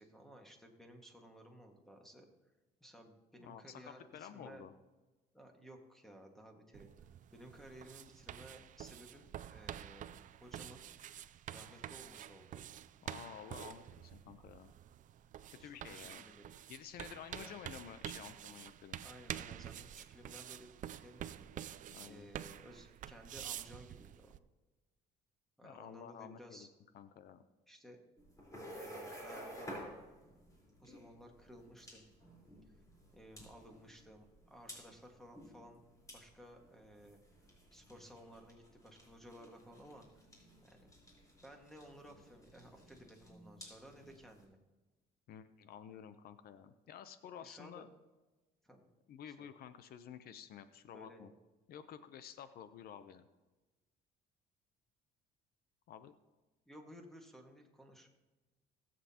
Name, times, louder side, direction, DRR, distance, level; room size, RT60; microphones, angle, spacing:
voice 1, 0.0-2.3 2.8-4.6 5.3-6.9 7.3-10.8 11.5-12.7 15.6-16.1 16.4-16.6 17.3-17.6 19.0-20.7 21.0-24.3 25.6-26.7 27.7-28.0 28.7-29.8 30.8-32.1 33.1-35.8 36.1-37.2 37.7-40.2 40.6-40.9 41.4-44.6 47.4-47.8 48.6-48.8 49.3-49.5 50.9-51.3 56.7-58.1, equal, ahead, 3 dB, 1.7 m, -56 dB
voice 2, 3.4-4.7 13.0-14.7 15.5-16.2 16.7-19.0 21.9-22.3 25.6-26.7 26.9-27.4 45.3-47.9 49.1-51.3 51.7-53.3 55.9-56.1, left 9 dB, 65° left, 12 dB, 0.7 m, -51 dB
sound 1, 6.7-24.4, right 11 dB, 50° right, 0.5 m, -48 dB
sound 2, 28.2-44.4, equal, 20° left, 4.2 m, -53 dB
19.5 x 7.7 x 2.9 m, 1.2 s
cardioid pair, 110°, 17 cm